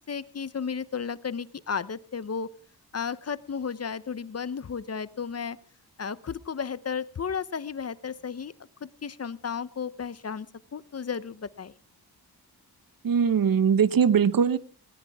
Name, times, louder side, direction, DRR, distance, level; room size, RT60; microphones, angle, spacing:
voice 1, 0.1-2.5 2.9-5.6 6.0-8.5 8.8-10.5 10.7-11.7, left 6 dB, 40° left, 17 dB, 0.7 m, -33 dB
voice 2, 13.0-14.6, right 7 dB, 60° right, 16 dB, 1.0 m, -21 dB
19.0 x 18.0 x 3.5 m, 0.39 s
wide cardioid pair, 110°, 39 cm